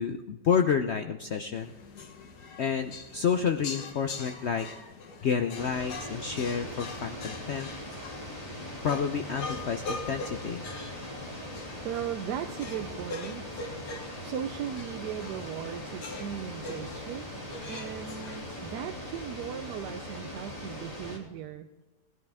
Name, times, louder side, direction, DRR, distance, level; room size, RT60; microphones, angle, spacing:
voice 1, 0.0-1.7 2.6-4.9 5.2-7.7 8.8-10.7, left 7 dB, 60° left, 6 dB, 0.7 m, -29 dB
sound 1, 1.5-18.7, left 3 dB, 85° left, 1.8 m, -43 dB
sound 2, 5.5-21.2, left 1 dB, 25° left, 2.7 m, -40 dB
voice 2, 11.8-13.7 14.2-17.3 17.7-21.7, right 9 dB, 85° right, 7 dB, 1.2 m, -37 dB
18.5 x 11.0 x 3.5 m, 1.2 s
omnidirectional pair, 1.7 m